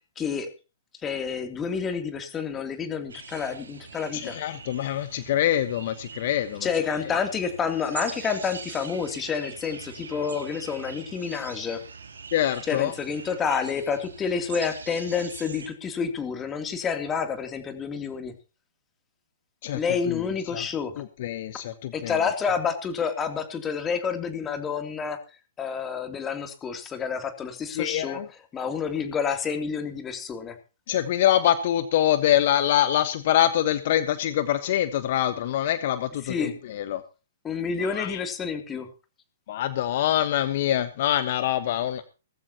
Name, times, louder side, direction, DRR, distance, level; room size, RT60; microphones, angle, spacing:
voice 1, 0.2-0.5 1.0-4.4 6.6-11.8 12.7-18.3 19.7-20.9 21.9-25.2 25.6-28.2 28.5-30.6 36.2-36.5 37.4-38.9, left 6 dB, 20° left, 6 dB, 3.1 m, -29 dB
sound 1, 3.1-15.7, right 5 dB, 75° right, 3.8 m, -43 dB
voice 2, 4.1-6.7 12.3-12.9 19.6-19.8 20.1-20.2 20.5-20.6 21.0-22.2 27.8-28.3 30.9-37.0 37.8-38.2 39.5-42.0, left 11 dB, 50° left, 11 dB, 1.2 m, -25 dB
19.0 x 15.0 x 3.0 m, 0.33 s
figure-of-eight pair, 120°, 0 cm